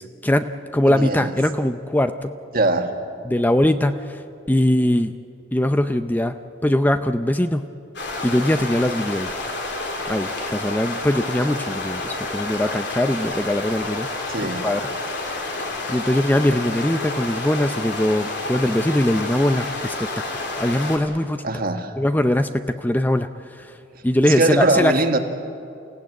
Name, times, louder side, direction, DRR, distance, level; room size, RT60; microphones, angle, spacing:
voice 1, 0.0-2.3 3.3-4.2 4.5-5.1 5.5-6.3 6.6-7.7 8.2-9.3 10.1-14.1 14.4-15.5 15.9-21.5 22.0-23.7 24.0-24.9, left 1 dB, 10° left, 9 dB, 0.5 m, -21 dB
voice 2, 0.8-1.3 2.5-2.9 14.3-14.6 21.4-21.9 24.2-25.2, right 2 dB, 50° right, 5 dB, 1.7 m, -21 dB
sound 1, 8.0-21.0, left 2 dB, 60° left, 3.4 m, -29 dB
29.0 x 16.0 x 9.0 m, 2.6 s
head